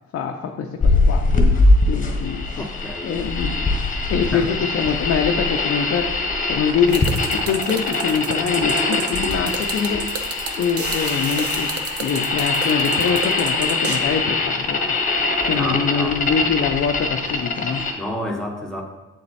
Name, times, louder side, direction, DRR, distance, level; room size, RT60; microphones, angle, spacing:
voice 1, 0.1-1.2 1.9-2.6 3.0-3.6 4.1-6.1 6.5-7.0 7.3-10.0 10.6-11.7 12.0-15.0 15.4-17.8, left 6 dB, 50° left, 2 dB, 0.6 m, -24 dB
sound 1, 0.8-17.9, left 3 dB, 25° left, 1.2 m, -22 dB
voice 2, 2.6-3.1 4.3-4.5 15.5-16.2 18.0-18.8, equal, ahead, 0 dB, 1.2 m, -29 dB
sound 2, 6.9-14.0, right 5 dB, 50° right, 0.8 m, -31 dB
7.9 x 4.3 x 4.1 m, 1.1 s
cardioid pair, 90°, 30 cm